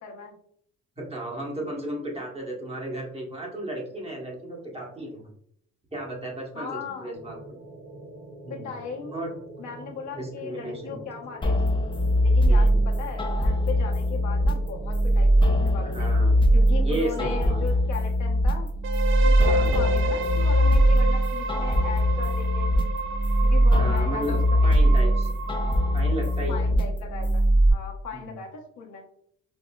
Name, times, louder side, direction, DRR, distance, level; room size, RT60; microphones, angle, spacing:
voice 1, 0.0-0.4 6.5-7.1 8.5-9.2 9.6-11.6 12.2-16.1 16.5-18.7 19.2-22.7 23.4-25.1 26.5-27.4 27.7-29.0, left 6 dB, 70° left, 1 dB, 0.9 m, -38 dB
voice 2, 1.0-5.3 5.9-6.7 7.0-7.4 8.4-8.7 9.1-9.3 10.1-11.0 12.4-12.8 15.9-16.4 16.8-17.6 19.4-19.7 23.7-25.3 25.9-26.7 28.1-28.4, right 1 dB, 20° right, -2 dB, 1.2 m, -34 dB
sound 1, 7.1-17.7, right 2 dB, 65° right, 0.9 m, -44 dB
sound 2, 11.4-27.7, equal, 15° left, 0.5 m, -21 dB
sound 3, 18.8-26.6, right 2 dB, 45° right, 0.4 m, -32 dB
5.3 x 2.0 x 2.2 m, 0.66 s
cardioid pair, 90°, 30 cm